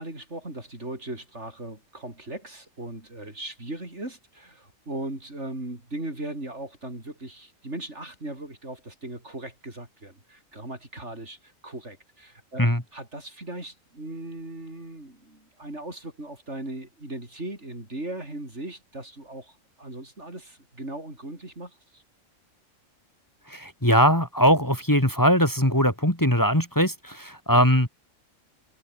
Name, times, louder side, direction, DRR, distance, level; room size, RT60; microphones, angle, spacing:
voice 1, 0.0-22.0, right 1 dB, 60° right, 6.6 m, -38 dB
voice 2, 23.5-27.9, equal, 15° left, 3.7 m, -21 dB
omnidirectional pair, 1.4 m